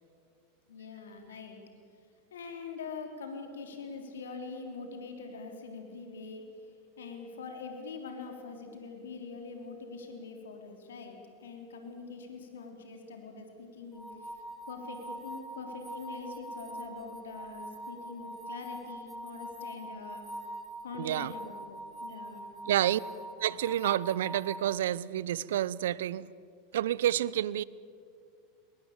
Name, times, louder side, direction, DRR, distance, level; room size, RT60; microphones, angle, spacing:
voice 1, 0.7-1.6 2.3-6.4 7.0-14.3 14.7-20.2 20.8-22.5, left 4 dB, 80° left, 3.5 m, -44 dB
sound 1, 13.9-24.8, right 1 dB, ahead, 2.7 m, -43 dB
voice 2, 21.0-21.3 22.7-23.0 23.4-26.3 26.7-27.6, right 12 dB, 75° right, 0.6 m, -29 dB
21.5 x 21.0 x 8.8 m
hypercardioid pair, 90°, 0 cm